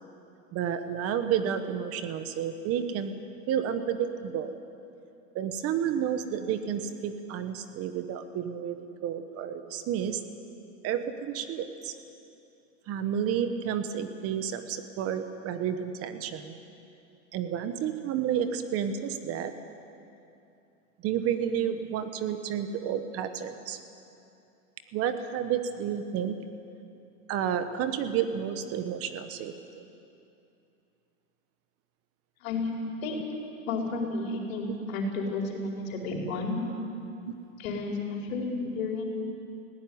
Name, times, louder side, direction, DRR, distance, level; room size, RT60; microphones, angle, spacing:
voice 1, 0.5-3.1 3.5-4.5 5.3-8.8 9.0-10.2 10.8-12.0 12.9-16.6 17.3-19.5 21.0-23.8 24.9-26.4 27.3-29.8 37.2-37.3, right 8 dB, 35° right, 9 dB, 1.2 m, -31 dB
voice 2, 32.4-32.7 33.0-33.2 33.7-36.6 37.6-39.0, left 3 dB, 75° left, 0 dB, 4.5 m, -32 dB
19.5 x 16.5 x 9.5 m, 2.7 s
supercardioid pair, 140°, 40 cm